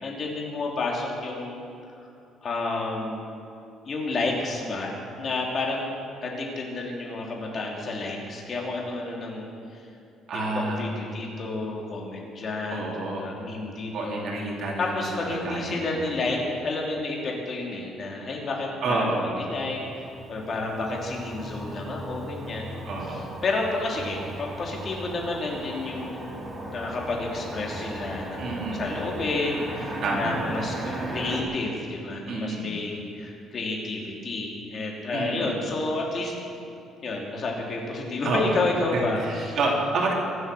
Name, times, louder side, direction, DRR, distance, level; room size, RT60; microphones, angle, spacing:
voice 1, 0.0-1.7 2.0-2.1 2.4-3.2 3.9-9.8 10.5-14.2 14.8-22.8 23.1-26.3 26.7-36.3 37.0-39.6, left 2 dB, 35° left, -1 dB, 2.9 m, -30 dB
voice 2, 10.3-10.8 12.7-13.3 13.9-15.9 18.8-19.3 22.9-23.3 28.4-28.8 30.0-30.3 32.3-32.7 35.1-35.5 38.2-38.6 38.9-40.1, right 2 dB, 50° right, -2 dB, 2.9 m, -29 dB
Motor vehicle (road), 19.5-31.4, right 1 dB, 20° right, 2.7 m, -37 dB
23.5 x 8.0 x 6.7 m, 2.6 s
cardioid pair, 160°, 0 cm